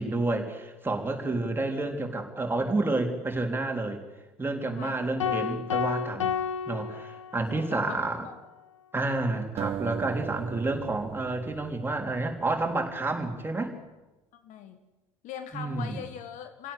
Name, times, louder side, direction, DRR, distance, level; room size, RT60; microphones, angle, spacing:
voice 1, 0.0-4.0 4.4-6.4 6.7-8.3 8.9-13.7 15.5-16.0, right 2 dB, 15° right, 3 dB, 3.7 m, -29 dB
voice 2, 4.8-5.1 7.5-8.0 8.2-8.3 14.3-14.8 15.2-16.7, left 9 dB, 50° left, 9 dB, 1.7 m, -41 dB
sound 1, 5.2-7.7, left 7 dB, 75° left, 0.7 m, -31 dB
sound 2, 9.6-12.8, right 10 dB, 40° right, 0.7 m, -38 dB
25.5 x 17.0 x 8.4 m, 1.1 s
figure-of-eight pair, 60°, 16 cm